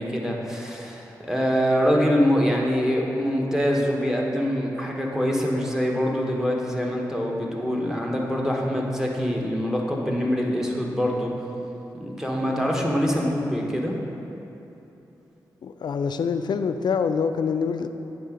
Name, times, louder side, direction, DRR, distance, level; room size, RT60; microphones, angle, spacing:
voice 1, 0.0-11.3 11.9-14.0, equal, 5° right, -1 dB, 1.2 m, -24 dB
voice 2, 15.6-17.9, left 6 dB, 70° left, 9 dB, 0.4 m, -25 dB
9.2 x 3.8 x 5.0 m, 3.0 s
cardioid pair, 50°, 8 cm